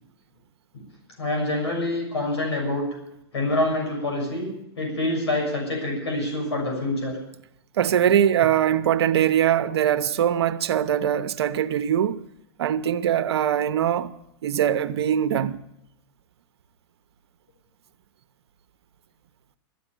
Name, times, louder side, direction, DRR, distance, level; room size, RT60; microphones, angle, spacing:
voice 1, 1.2-2.9 3.3-4.5 4.8-7.2, left 2 dB, 90° left, 6.7 m, -26 dB
voice 2, 7.8-12.2 12.6-14.1 14.4-15.6, right 10 dB, 80° right, 0.9 m, -22 dB
13.0 x 9.6 x 9.0 m
hypercardioid pair, 120°, 14 cm